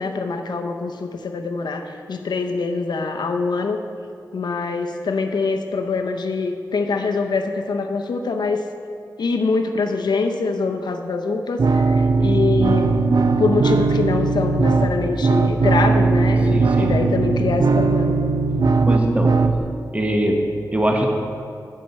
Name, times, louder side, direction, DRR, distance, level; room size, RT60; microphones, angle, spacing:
voice 1, 0.0-3.8 4.3-8.6 9.2-12.9 13.4-18.2, left 4 dB, 85° left, 5 dB, 0.7 m, -24 dB
sound 1, 11.6-19.6, right 4 dB, 65° right, 0.5 m, -18 dB
voice 2, 16.5-16.9 18.9-19.3 19.9-20.4 20.7-21.1, right 1 dB, 20° right, 1 dB, 1.0 m, -21 dB
8.8 x 7.5 x 4.2 m, 2.4 s
wide cardioid pair, 70°, 7 cm